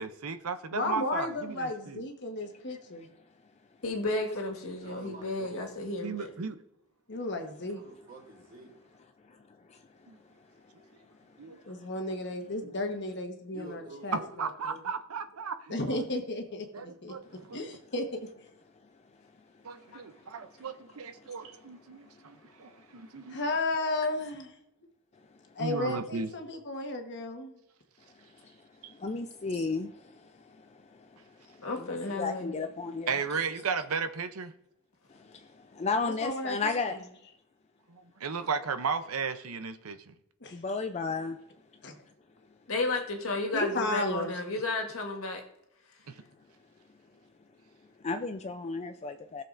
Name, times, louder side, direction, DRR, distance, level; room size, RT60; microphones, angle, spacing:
voice 1, 0.0-2.0 6.0-6.6 10.1-10.2 11.4-11.6 12.6-12.7 14.4-16.0 16.7-17.6 19.6-23.4 25.6-26.3 28.8-28.9 33.1-34.5 37.9-40.1 46.1-46.2, right 5 dB, 80° right, 0.7 m, -35 dB
voice 2, 0.7-3.1 7.1-7.8 11.7-14.8 15.7-17.1 17.5-18.2 23.3-24.5 25.5-27.5 36.0-36.7 40.4-40.6 41.8-41.9 43.5-44.4, left 2 dB, 55° left, 1.3 m, -33 dB
voice 3, 3.8-6.3 31.6-32.5 42.7-45.4, left 2 dB, 75° left, 1.8 m, -33 dB
voice 4, 4.8-5.7 7.8-8.7 10.5-10.9 11.3-11.4 13.5-14.3, right 3 dB, 45° right, 3.2 m, -48 dB
voice 5, 28.9-30.1 30.4-31.1 31.4-33.1 35.1-37.0 40.5-41.4 48.0-49.4, left 4 dB, 30° left, 0.4 m, -34 dB
17.0 x 6.7 x 2.6 m
head